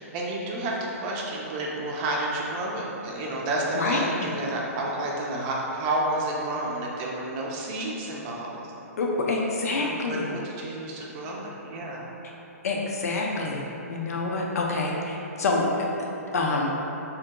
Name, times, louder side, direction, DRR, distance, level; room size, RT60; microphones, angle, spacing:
voice 1, 0.0-8.6 9.7-12.1, right 1 dB, 35° right, -3 dB, 0.5 m, -30 dB
voice 2, 3.8-4.3 9.0-10.3 12.6-13.6 13.9-15.7 16.0-16.1 16.3-16.7, left 3 dB, 70° left, -1 dB, 0.5 m, -27 dB
3.8 x 2.8 x 2.2 m, 3.0 s
hypercardioid pair, 135°, 8 cm